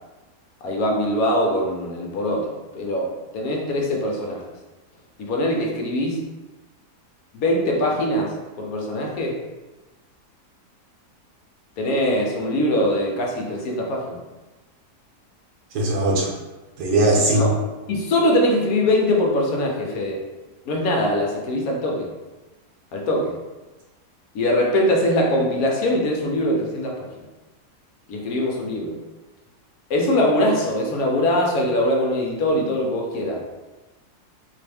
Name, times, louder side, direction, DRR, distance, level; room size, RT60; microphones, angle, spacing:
voice 1, 0.6-4.4 5.2-6.2 7.3-9.4 11.8-14.2 16.1-16.2 17.3-17.5 17.9-20.2 20.7-22.1 22.9-23.4 24.3-27.1 28.1-29.0 29.9-33.4, left 1 dB, 70° left, 0 dB, 1.0 m, -22 dB
voice 2, 15.7-16.3 16.8-17.5, right 1 dB, 85° right, -2 dB, 1.4 m, -19 dB
3.7 x 2.4 x 3.4 m, 1.1 s
omnidirectional pair, 1.7 m